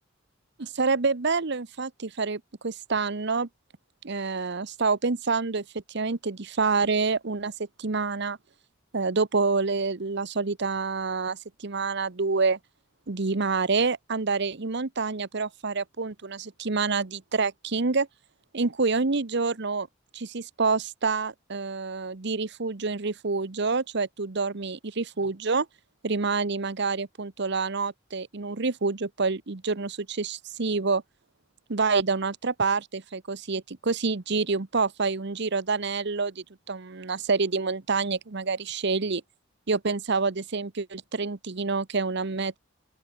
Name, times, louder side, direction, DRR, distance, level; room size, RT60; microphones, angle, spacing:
voice 1, 0.6-3.5 4.0-7.5 7.8-8.4 8.9-12.6 13.1-18.1 18.5-19.9 20.1-25.7 26.0-31.0 31.7-39.2 39.7-42.6, right 4 dB, 60° right, 1.0 m, -27 dB
open air
head